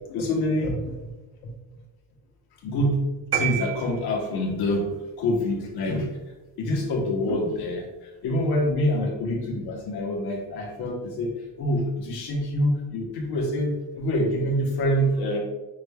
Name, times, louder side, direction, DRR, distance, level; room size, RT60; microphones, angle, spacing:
voice 1, 0.1-1.1 1.4-1.5 2.6-3.0 3.3-4.9 5.2-6.2 6.6-11.3 11.6-15.4, left 1 dB, 80° left, -1 dB, 1.2 m, -26 dB
sound 1, 3.3-4.6, right 9 dB, 35° right, 0.7 m, -29 dB
5.9 x 3.3 x 2.3 m, 1.1 s
cardioid pair, 100°, 38 cm